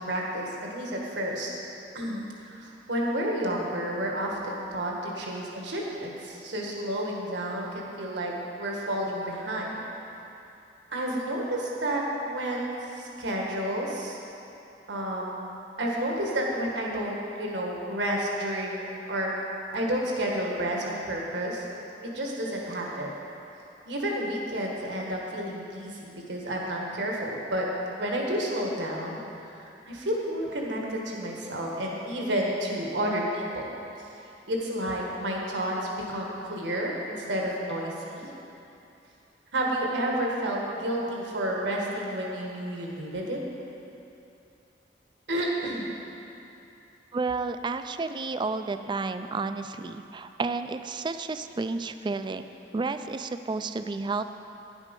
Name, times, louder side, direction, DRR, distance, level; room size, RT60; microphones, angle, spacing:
voice 1, 0.1-1.5 1.9-8.3 8.6-9.8 10.9-14.2 14.9-15.4 15.8-18.8 19.1-19.3 19.7-21.7 22.0-23.1 23.9-27.7 28.0-29.2 29.6-33.7 34.0-34.1 34.5-38.3 39.5-43.4 45.3-45.9, right 1 dB, 80° right, -2 dB, 1.7 m, -30 dB
voice 2, 47.1-52.4 52.7-54.2, right 3 dB, 25° right, 9 dB, 0.3 m, -31 dB
10.5 x 8.2 x 5.3 m, 2.9 s
head